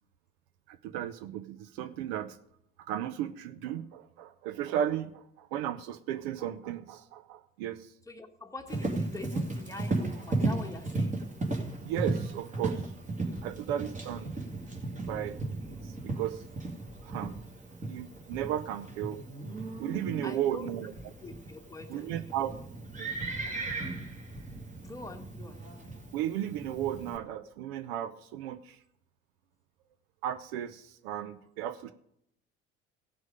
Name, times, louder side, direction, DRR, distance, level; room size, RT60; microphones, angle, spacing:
voice 1, 0.7-2.4 2.9-7.9 11.8-12.9 13.4-14.3 15.1-15.4 15.7-16.4 17.0-17.3 17.9-19.2 19.8-21.1 21.9-22.5 23.0-23.1 26.1-28.8 30.2-31.9, right 11 dB, 55° right, 13 dB, 0.7 m, -35 dB
voice 2, 8.1-11.2 20.2-20.7 21.2-22.2 24.8-25.6, left 2 dB, 10° left, 5 dB, 1.4 m, -44 dB
Livestock farm animals working animals, 8.7-27.2, right 2 dB, 20° right, 2.3 m, -36 dB
16.5 x 6.3 x 5.1 m, 0.75 s
figure-of-eight pair, 60°, 35 cm